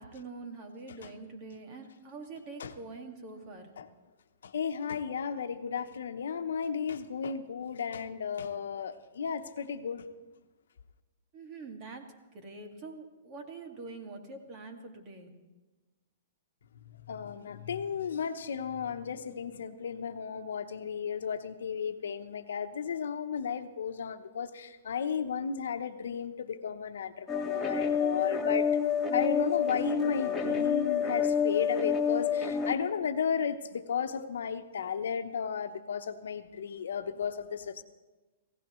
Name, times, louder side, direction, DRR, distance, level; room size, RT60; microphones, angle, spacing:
voice 1, 0.0-3.7 11.3-12.1 12.3-15.3, right 3 dB, 30° right, 3 dB, 2.1 m, -45 dB
voice 2, 4.4-10.1 17.1-28.7 29.1-37.8, left 6 dB, 85° left, 8 dB, 1.0 m, -34 dB
sound 1, 27.3-32.7, left 7 dB, 5° left, 1.9 m, -28 dB
27.5 x 16.0 x 3.1 m, 1.2 s
hypercardioid pair, 155°, 0 cm